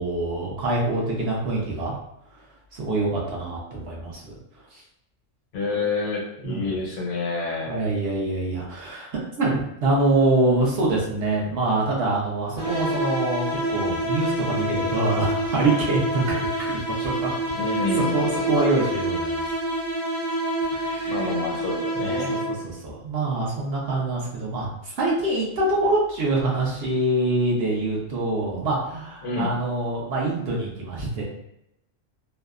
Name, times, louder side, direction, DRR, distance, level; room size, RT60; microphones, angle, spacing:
voice 1, 0.0-1.9 2.7-4.3 4.7-4.8 6.4-6.7 7.7-9.1 9.4-17.3 18.1-19.4 20.7-21.3 22.0-31.2, right 2 dB, 60° right, -4 dB, 0.8 m, -25 dB
voice 2, 5.5-7.8 17.5-18.2 21.1-22.4 29.2-29.6, left 3 dB, 75° left, -1 dB, 1.0 m, -28 dB
sound 1, 12.6-22.8, right 1 dB, 20° right, 0.4 m, -27 dB
2.7 x 2.1 x 2.3 m, 0.80 s
omnidirectional pair, 1.3 m